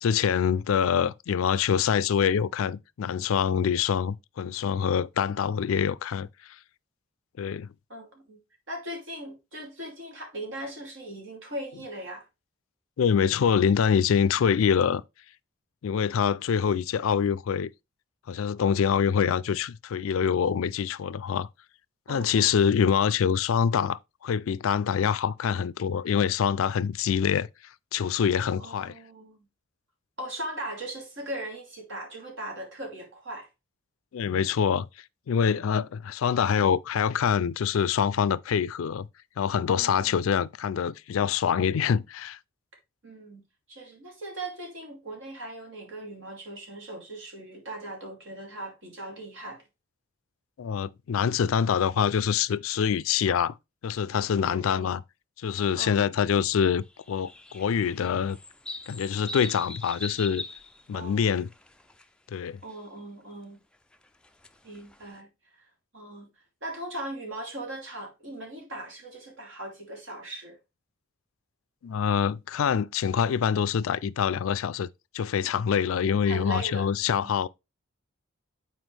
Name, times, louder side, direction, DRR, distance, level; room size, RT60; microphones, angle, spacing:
voice 1, 0.0-6.3 7.4-7.7 13.0-15.0 15.8-17.7 18.3-21.5 22.1-27.5 27.9-28.9 34.1-34.9 35.3-39.1 39.4-42.4 50.6-53.5 53.8-55.0 55.4-58.4 58.9-60.4 60.9-61.5 62.3-62.6 71.8-74.9 75.1-77.5, left 7 dB, 80° left, 0.4 m, -25 dB
voice 2, 7.9-8.4 8.7-12.3 16.0-16.3 22.1-22.6 28.6-29.4 30.2-33.5 39.8-40.3 43.0-43.4 43.7-49.6 54.4-54.9 55.8-56.0 60.9-61.3 62.6-63.6 64.6-65.3 65.5-65.7 65.9-66.3 66.6-70.6 76.2-77.3, right 1 dB, 60° right, 2.8 m, -39 dB
sound 1, 56.9-62.0 62.3-62.7 63.9-65.2, left 2 dB, 5° left, 0.3 m, -41 dB
8.0 x 4.6 x 3.3 m
head